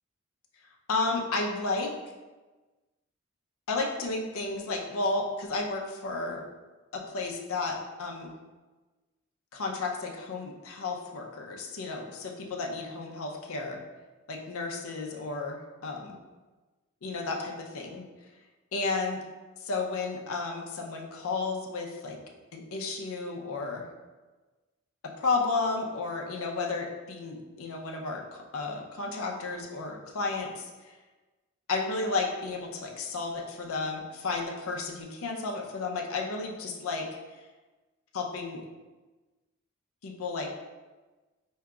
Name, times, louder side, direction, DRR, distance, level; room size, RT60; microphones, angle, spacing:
voice 1, 0.9-1.9 3.7-6.4 6.9-8.3 9.5-13.8 14.3-16.1 17.0-18.0 18.7-19.2 19.7-22.2 22.5-23.9 25.2-30.9 31.7-37.1 38.1-38.6 40.0-40.6, left 3 dB, 70° left, 1 dB, 0.5 m, -32 dB
4.7 x 2.7 x 2.3 m, 1.2 s
head